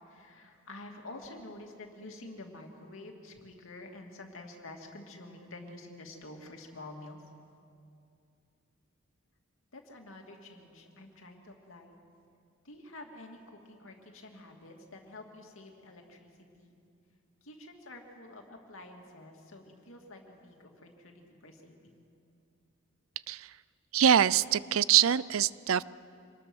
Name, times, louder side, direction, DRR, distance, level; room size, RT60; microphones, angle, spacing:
voice 1, 0.1-7.2 9.7-12.0 12.6-16.3 16.6-16.7 17.4-22.0, left 2 dB, 70° left, 2 dB, 2.6 m, -48 dB
voice 2, 23.9-25.8, right 9 dB, 75° right, 20 dB, 0.4 m, -24 dB
25.5 x 20.0 x 6.3 m, 2.5 s
head